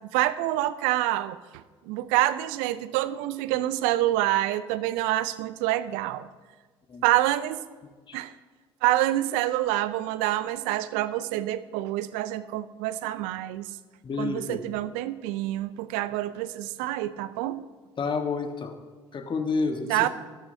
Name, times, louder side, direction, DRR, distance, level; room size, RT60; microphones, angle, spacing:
voice 1, 0.1-6.3 7.0-7.6 8.1-8.3 8.8-13.7 14.2-17.6 19.9-20.1, right 15 dB, 70° right, 15 dB, 0.6 m, -27 dB
voice 2, 14.0-14.6 18.0-18.8 19.1-20.1, left 4 dB, 35° left, 6 dB, 1.4 m, -29 dB
15.5 x 12.5 x 2.8 m, 1.4 s
hypercardioid pair, 60°, 14 cm